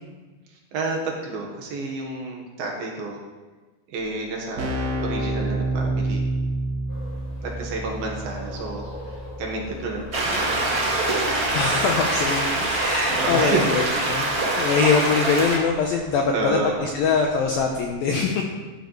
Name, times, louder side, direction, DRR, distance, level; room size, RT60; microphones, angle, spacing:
voice 1, 0.7-3.2 3.9-6.2 7.4-8.8 9.4-10.6 13.1-13.7 16.3-16.8, right 3 dB, 65° right, 0 dB, 3.0 m, -29 dB
Keyboard (musical), 4.0-4.1 4.3-14.9, right 2 dB, 90° right, 1.4 m, -31 dB
sound 1, 6.9-17.9, left 1 dB, 60° left, 6.9 m, -43 dB
sound 2, 10.1-15.6, right 2 dB, 30° right, 1.7 m, -24 dB
voice 2, 11.5-14.3 14.6-18.4, left 5 dB, 75° left, 2 dB, 2.1 m, -23 dB
16.0 x 12.0 x 3.2 m, 1.3 s
omnidirectional pair, 5.2 m